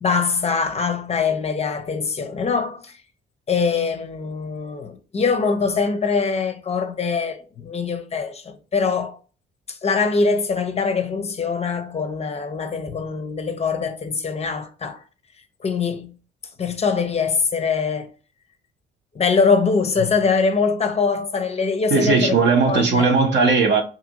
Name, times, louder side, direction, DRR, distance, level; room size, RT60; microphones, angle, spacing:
voice 1, 0.0-3.0 3.5-9.2 9.7-15.0 15.6-16.2 16.6-18.1 19.1-22.3 22.7-23.1, left 5 dB, 30° left, 0.5 m, -23 dB
voice 2, 21.9-23.8, right 4 dB, 60° right, 0.8 m, -17 dB
2.7 x 2.6 x 2.8 m
cardioid pair, 90°, 20 cm